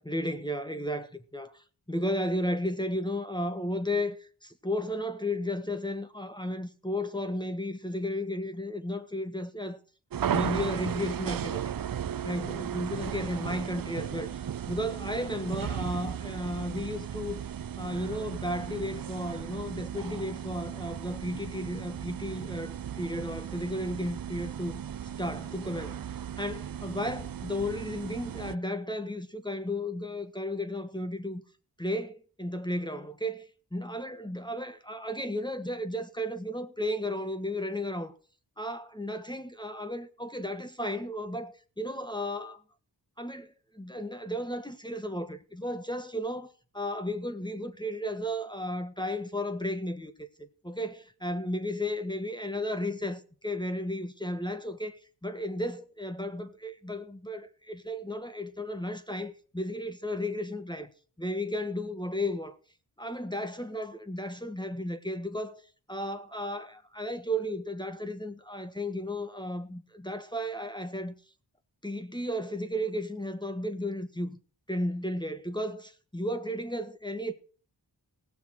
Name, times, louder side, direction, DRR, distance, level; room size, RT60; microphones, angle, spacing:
voice 1, 0.0-9.8 10.3-11.6 12.2-17.4 17.8-24.8 25.2-26.0 26.4-31.4 31.8-38.1 38.6-42.6 43.2-60.9 61.2-62.6 63.0-65.6 65.9-71.1 71.8-74.4 74.7-77.3, left 1 dB, 10° left, 1.3 m, -34 dB
sound 1, 10.1-28.5, right 9 dB, 50° right, 0.5 m, -36 dB
17.0 x 6.9 x 6.4 m
wide cardioid pair, 50°, 45 cm